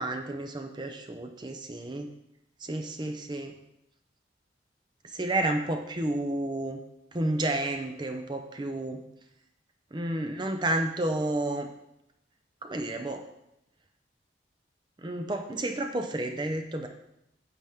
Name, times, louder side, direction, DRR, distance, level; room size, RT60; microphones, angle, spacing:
voice 1, 0.0-2.1 2.6-3.5 5.1-6.8 7.1-9.0 9.9-11.7 12.6-13.3 15.0-16.9, right 1 dB, 25° right, 5 dB, 0.6 m, -31 dB
9.8 x 7.4 x 3.6 m, 0.84 s
head